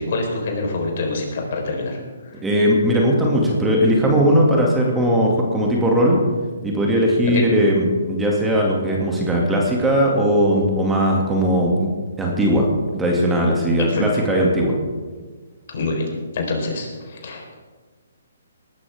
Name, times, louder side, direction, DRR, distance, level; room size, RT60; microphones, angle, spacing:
voice 1, 0.0-2.4 7.3-7.5 13.8-14.2 15.7-17.6, left 2 dB, 55° left, 1 dB, 4.3 m, -26 dB
voice 2, 2.4-6.2 6.6-11.9 12.2-12.7 12.9-14.7, equal, 10° right, -2 dB, 2.4 m, -18 dB
20.5 x 12.5 x 3.6 m, 1.4 s
hypercardioid pair, 145°, 0 cm